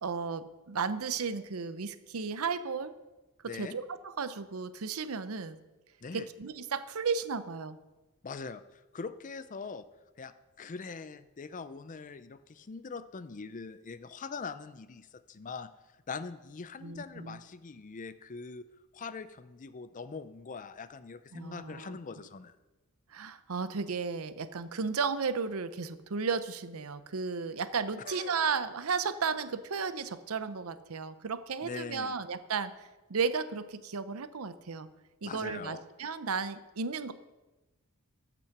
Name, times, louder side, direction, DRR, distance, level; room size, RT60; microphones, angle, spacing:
voice 1, 0.0-2.9 3.6-5.6 6.1-7.8 16.8-17.4 21.3-22.0 23.1-32.7 33.1-34.9 35.2-37.1, right 5 dB, 70° right, 13 dB, 0.7 m, -34 dB
voice 2, 3.4-3.8 6.0-6.3 8.2-9.8 10.2-15.7 16.1-18.6 18.9-22.5 28.1-28.4 31.6-32.2 35.2-35.8, left 4 dB, 35° left, 13 dB, 0.5 m, -42 dB
14.5 x 6.1 x 5.9 m, 1.1 s
head